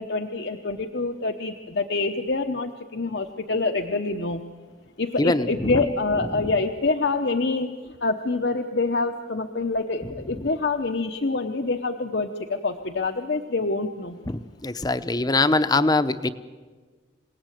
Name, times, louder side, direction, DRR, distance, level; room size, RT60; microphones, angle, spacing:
voice 1, 0.0-4.4 5.0-14.2, left 3 dB, 65° left, 5 dB, 1.0 m, -26 dB
voice 2, 5.2-5.8 10.3-10.5 14.3-16.3, left 2 dB, 20° left, 13 dB, 0.8 m, -23 dB
27.0 x 18.0 x 9.2 m, 1.4 s
head